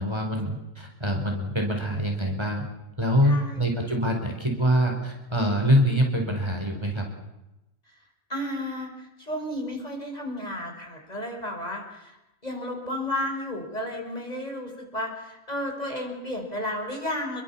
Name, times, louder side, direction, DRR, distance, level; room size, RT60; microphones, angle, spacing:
voice 1, 0.0-2.6 3.0-7.1, equal, 20° right, 2 dB, 4.9 m, -24 dB
voice 2, 3.2-3.7 8.3-12.2 12.4-17.4, left 1 dB, 30° left, 1 dB, 5.9 m, -33 dB
29.5 x 23.0 x 7.3 m, 0.93 s
omnidirectional pair, 1.4 m